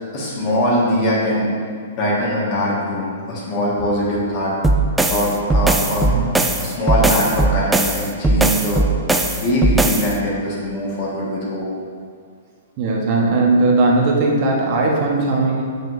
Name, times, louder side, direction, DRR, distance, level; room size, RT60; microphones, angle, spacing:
voice 1, 0.1-1.5 1.9-4.5 5.1-6.1 6.6-8.8 9.4-11.7, left 1 dB, 40° left, -6 dB, 1.6 m, -21 dB
sound 1, 4.6-10.1, right 2 dB, 5° right, 0.4 m, -18 dB
voice 2, 12.8-15.6, right 3 dB, 40° right, -2 dB, 1.1 m, -18 dB
7.3 x 5.4 x 2.6 m, 2.1 s
figure-of-eight pair, 115°, 0 cm